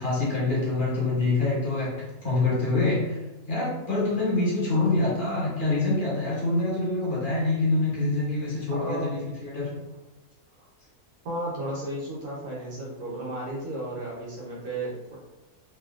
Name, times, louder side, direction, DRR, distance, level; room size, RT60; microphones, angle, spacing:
voice 1, 0.0-3.2 3.5-9.7, left 2 dB, 35° left, -7 dB, 1.2 m, -25 dB
voice 2, 8.7-9.1 11.2-15.2, right 1 dB, 85° right, -6 dB, 1.4 m, -34 dB
2.9 x 2.7 x 2.4 m, 1.1 s
omnidirectional pair, 1.6 m